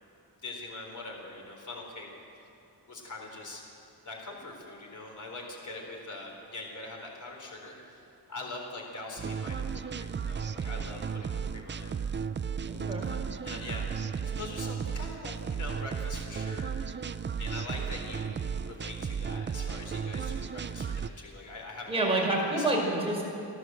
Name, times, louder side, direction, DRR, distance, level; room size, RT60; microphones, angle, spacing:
voice 1, 0.4-2.1 2.9-3.8 4.1-11.9 13.0-13.2 13.4-16.7 17.4-23.0, left 2 dB, 50° left, 0 dB, 4.2 m, -43 dB
sound 1, 9.2-21.1, right 6 dB, 30° right, 0.4 m, -34 dB
voice 2, 12.6-13.0 21.9-23.2, right 2 dB, 15° right, -3 dB, 4.9 m, -28 dB
29.5 x 11.5 x 7.8 m, 2.7 s
wide cardioid pair, 145°, 39 cm